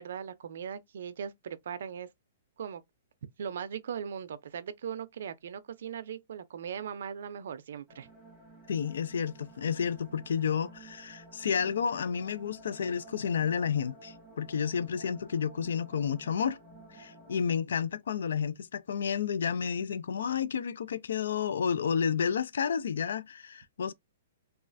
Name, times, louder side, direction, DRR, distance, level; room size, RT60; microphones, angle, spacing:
voice 1, 0.0-2.1 2.6-2.8 3.4-8.1, right 8 dB, 70° right, 0.4 m, -39 dB
sound 1, 7.9-17.4, right 2 dB, ahead, 1.0 m, -53 dB
voice 2, 8.7-16.6 16.9-23.9, left 7 dB, 80° left, 0.3 m, -31 dB
3.1 x 2.3 x 2.5 m
hypercardioid pair, 160°, 0 cm